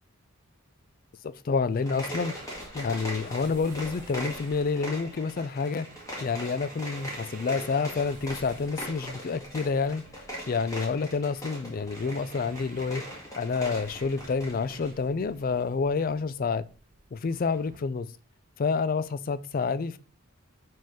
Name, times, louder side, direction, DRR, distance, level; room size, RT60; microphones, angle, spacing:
voice 1, 1.2-2.3 2.7-5.9 6.2-10.0 10.5-13.0 13.4-16.7 17.1-18.1 18.6-20.0, left 4 dB, 45° left, 0.4 m, -28 dB
sound 1, 1.7-15.0, equal, 15° left, 1.8 m, -40 dB
sound 2, 1.9-17.8, right 3 dB, 40° right, 0.6 m, -52 dB
5.2 x 3.8 x 5.7 m
head